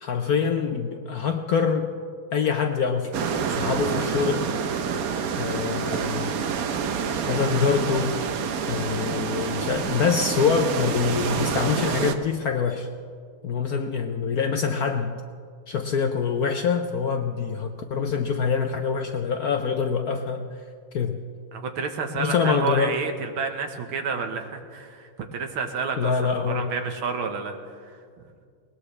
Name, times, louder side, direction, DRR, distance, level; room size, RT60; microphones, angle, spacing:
voice 1, 0.0-1.9 2.3-3.1 3.5-4.5 5.4-6.4 7.3-8.1 8.7-12.9 13.4-15.1 15.7-20.4 20.9-21.1 22.1-22.9 26.0-26.7, left 6 dB, 65° left, 5 dB, 0.9 m, -25 dB
sound 1, 3.1-12.1, right 6 dB, 60° right, 1.0 m, -27 dB
voice 2, 21.5-27.6 27.9-28.0, right 5 dB, 80° right, 5 dB, 2.0 m, -30 dB
21.0 x 19.5 x 3.3 m, 2.1 s
omnidirectional pair, 2.3 m